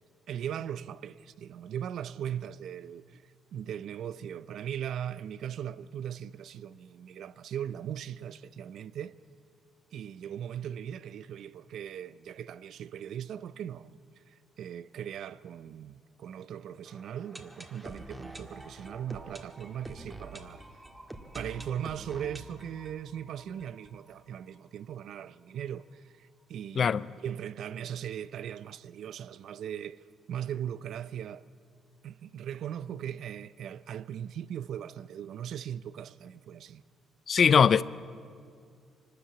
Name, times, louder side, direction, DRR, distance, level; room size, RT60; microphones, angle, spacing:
voice 1, 0.3-9.1 9.9-14.0 14.3-20.6 21.3-30.0 30.3-31.4 32.0-36.8, right 9 dB, 70° right, 0.5 m, -39 dB
sound 1, 16.9-24.6 24.9-25.0 25.2-25.3 25.8-25.9, right 1 dB, 15° right, 1.7 m, -47 dB
voice 2, 37.3-37.8, left 7 dB, 50° left, 0.5 m, -21 dB
23.5 x 13.0 x 8.5 m
cardioid pair, 90°, 0 cm